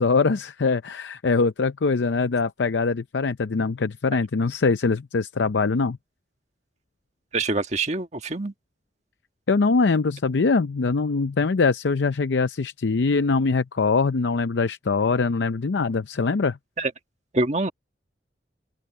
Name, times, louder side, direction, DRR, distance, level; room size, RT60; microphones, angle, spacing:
voice 1, 0.0-6.0 9.5-16.6, left 4 dB, 85° left, 0.6 m, -23 dB
voice 2, 7.3-8.5 16.8-16.9 17.3-17.7, right 2 dB, 40° right, 1.6 m, -25 dB
head